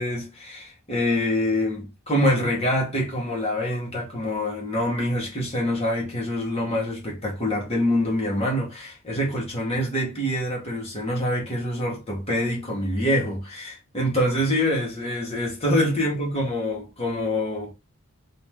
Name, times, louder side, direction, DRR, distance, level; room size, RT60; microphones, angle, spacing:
voice 1, 0.0-17.7, left 1 dB, 30° left, 2.1 m, -25 dB
4.1 x 3.2 x 3.8 m
head